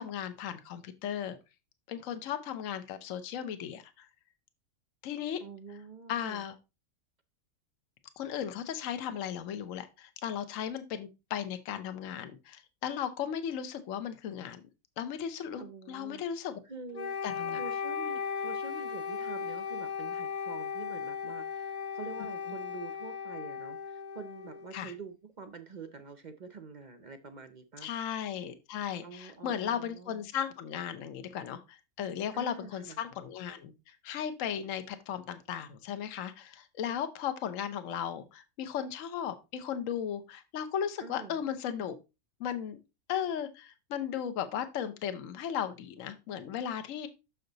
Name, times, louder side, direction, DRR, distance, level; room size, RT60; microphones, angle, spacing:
voice 1, 0.0-1.4 1.9-4.1 5.0-5.4 6.1-6.5 8.2-14.7 15.0-16.6 17.2-17.6 24.7-24.9 27.8-42.0 42.4-42.8 43.1-47.1, left 9 dB, 65° left, 9 dB, 1.2 m, -36 dB
voice 2, 5.4-6.4 15.6-16.2 16.6-17.1 17.5-27.9 29.0-30.2 32.3-33.0 41.0-41.4, right 4 dB, 50° right, 10 dB, 0.5 m, -46 dB
Wind instrument woodwind instrument, 16.9-25.0, left 6 dB, 85° left, 0.3 m, -37 dB
6.6 x 5.7 x 3.9 m, 0.26 s
omnidirectional pair, 1.5 m